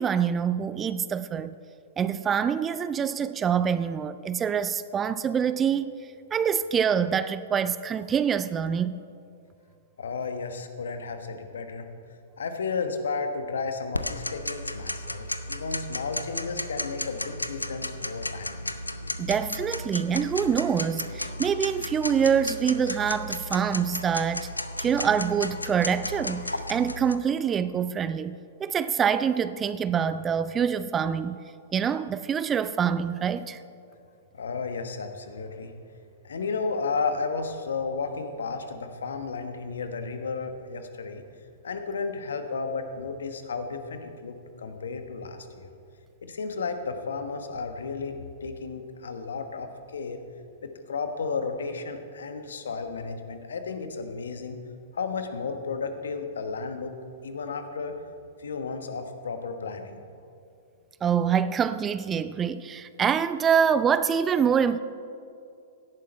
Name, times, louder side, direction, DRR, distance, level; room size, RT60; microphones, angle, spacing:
voice 1, 0.0-1.5 2.0-5.9 6.3-9.0 19.2-24.5 24.8-31.4 31.7-33.6 61.0-64.8, right 7 dB, 20° right, 0.4 m, -25 dB
voice 2, 10.0-11.9 12.4-18.6 34.3-35.7 36.2-41.2 41.6-45.8 46.2-50.2 50.6-54.6 54.9-56.9 57.2-58.0 58.4-60.0, left 4 dB, 70° left, 1.3 m, -33 dB
Tick-tock, 13.9-27.1, left 1 dB, 90° left, 0.7 m, -34 dB
17.0 x 11.5 x 4.3 m
figure-of-eight pair, 105°, 0 cm